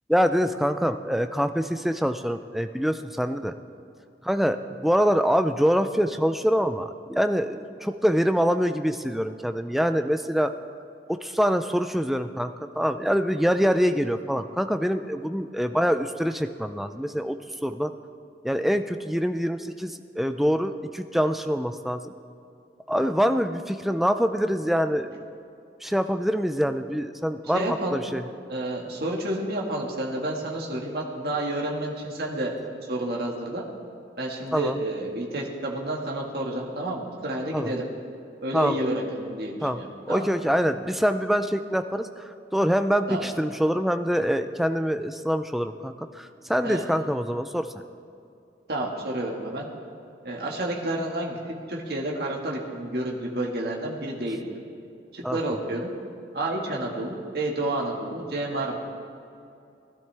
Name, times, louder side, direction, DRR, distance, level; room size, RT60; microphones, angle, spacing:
voice 1, 0.1-3.5 4.2-10.5 11.1-17.4 17.6-17.9 18.4-22.1 22.9-25.2 25.8-28.2 34.5-34.8 37.5-37.7 38.5-38.8 39.6-39.8 40.1-47.7 55.2-55.4, equal, ahead, 9 dB, 0.4 m, -25 dB
voice 2, 27.5-28.0 28.5-32.5 32.9-33.6 34.2-37.9 38.4-40.3 43.1-43.3 46.6-46.9 48.7-49.7 50.2-54.5 55.1-55.9 56.3-58.8, right 1 dB, 60° right, -2 dB, 1.8 m, -30 dB
19.5 x 12.0 x 3.4 m, 2.6 s
head